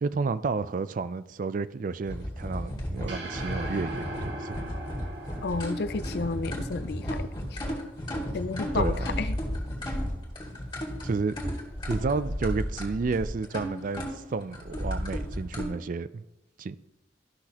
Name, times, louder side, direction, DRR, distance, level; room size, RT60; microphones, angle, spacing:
voice 1, 0.0-4.6 8.7-9.1 11.0-11.3 11.9-16.2 16.6-16.8, right 4 dB, 45° right, 0.4 m, -31 dB
sound 1, 2.0-15.7, equal, 25° left, 2.0 m, -33 dB
sound 2, 3.1-7.5, right 1 dB, 75° right, 1.8 m, -40 dB
voice 2, 5.4-7.2 7.5-7.6 8.3-9.4, left 4 dB, 60° left, 0.5 m, -31 dB
13.5 x 6.0 x 2.9 m
head